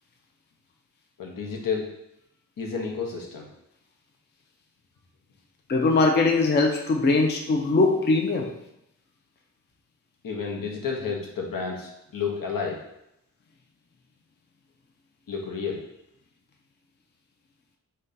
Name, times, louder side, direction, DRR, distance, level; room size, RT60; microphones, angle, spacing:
voice 1, 1.2-1.9 2.6-3.5 10.2-12.8 15.3-15.8, left 5 dB, 75° left, 0 dB, 0.8 m, -31 dB
voice 2, 5.7-8.5, left 3 dB, 35° left, 2 dB, 0.4 m, -21 dB
3.8 x 2.2 x 3.8 m, 0.82 s
wide cardioid pair, 135°, 33 cm